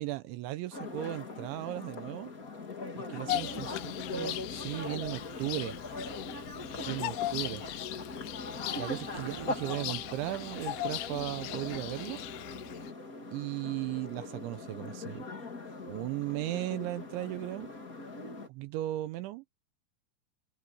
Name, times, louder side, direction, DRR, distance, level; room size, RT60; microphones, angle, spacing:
voice 1, 0.0-2.3 2.9-3.7 4.1-5.8 6.9-7.6 8.8-12.2 13.3-15.3 15.9-17.7 18.5-19.4, right 16 dB, 80° right, 3.0 m, -36 dB
sound 1, 0.7-18.5, left 3 dB, 25° left, 1.9 m, -41 dB
voice 2, 3.1-4.0 6.1-7.9, left 3 dB, 50° left, 6.7 m, -53 dB
Bird vocalization bird call bird song, 3.3-12.9, left 16 dB, 85° left, 3.2 m, -39 dB
sound 2, 8.6-13.6, right 5 dB, 55° right, 5.5 m, -52 dB
omnidirectional pair, 5.7 m